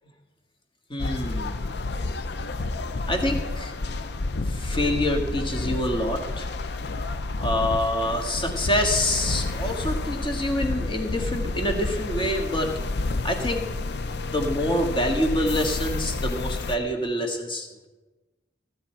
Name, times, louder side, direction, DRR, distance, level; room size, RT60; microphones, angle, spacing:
voice 1, 0.9-1.7 3.1-3.7 4.4-6.5 7.4-12.7 13.2-13.6 14.0-17.9, left 1 dB, 30° left, 2 dB, 1.8 m, -26 dB
sound 1, 1.0-16.8, left 2 dB, 65° left, 0.6 m, -30 dB
15.0 x 10.0 x 4.5 m, 1.2 s
head